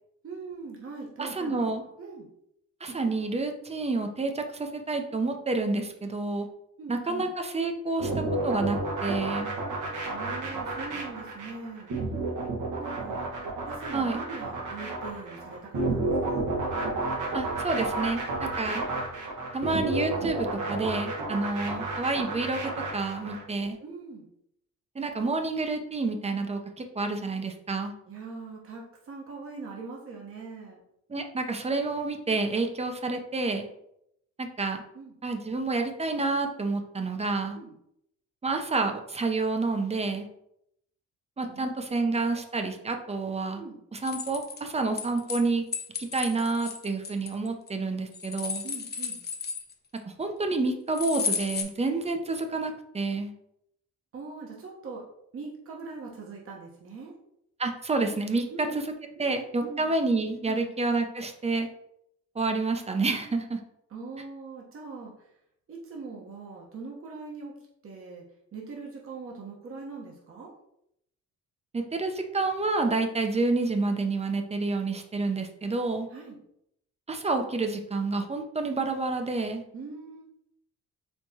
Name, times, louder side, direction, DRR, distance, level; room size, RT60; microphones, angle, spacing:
voice 1, 0.2-1.7 2.0-2.3 6.8-7.3 10.1-11.9 12.8-13.3 13.6-16.4 23.8-24.3 28.1-30.8 34.9-35.1 37.5-37.7 41.5-42.2 43.5-43.8 48.6-49.2 54.1-55.0 55.3-57.1 58.3-58.7 59.2-59.9 60.4-60.7 63.9-65.1 65.7-67.6 67.8-68.2 68.5-70.5 76.1-76.4 79.7-80.2, right 4 dB, 45° right, -2 dB, 1.0 m, -42 dB
voice 2, 1.2-1.8 2.8-6.5 6.9-8.1 8.4-9.5 13.9-14.2 17.3-18.8 19.5-23.8 25.0-27.9 31.1-33.7 34.4-34.8 35.2-37.6 38.4-40.3 41.4-43.6 43.9-45.7 46.0-48.6 50.1-53.3 57.6-58.4 58.7-58.8 59.2-61.7 62.4-63.6 71.7-76.1 77.1-79.6, right 3 dB, 20° right, 5 dB, 0.6 m, -29 dB
sound 1, 8.0-23.4, right 2 dB, 80° right, 1.2 m, -31 dB
sound 2, 44.0-45.4 45.7-47.7 48.1-50.0 50.9-51.6, left 5 dB, 35° left, 0.6 m, -33 dB
4.5 x 3.4 x 2.8 m, 0.77 s
cardioid pair, 90°, 30 cm